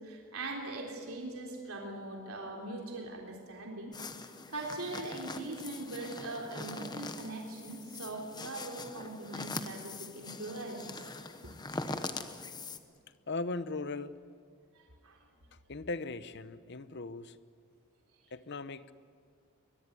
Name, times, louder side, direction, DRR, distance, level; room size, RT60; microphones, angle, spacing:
voice 1, 0.0-3.9 4.5-11.0 11.4-11.5 14.7-15.2, right 2 dB, 75° right, 0 dB, 3.6 m, -41 dB
sound 1, 3.9-12.8, left 3 dB, 20° left, 1.0 m, -43 dB
voice 2, 13.3-14.2 15.5-17.4 18.3-18.9, left 3 dB, 50° left, 14 dB, 0.8 m, -38 dB
22.5 x 21.5 x 9.8 m, 2.1 s
head